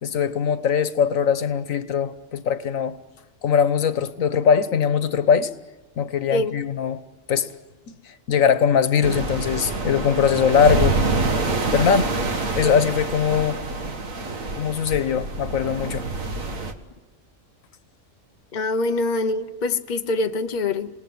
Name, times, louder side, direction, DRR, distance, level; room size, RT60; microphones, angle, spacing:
voice 1, 0.0-3.0 3.4-5.5 6.0-7.0 7.3-7.5 8.3-11.0 11.7-12.1 12.5-13.6 14.6-16.1, left 7 dB, 90° left, 1.5 m, -21 dB
sound 1, 9.0-16.7, right 3 dB, 90° right, 2.1 m, -26 dB
voice 2, 18.5-20.9, left 2 dB, 40° left, 1.0 m, -24 dB
28.0 x 19.0 x 9.4 m
omnidirectional pair, 1.3 m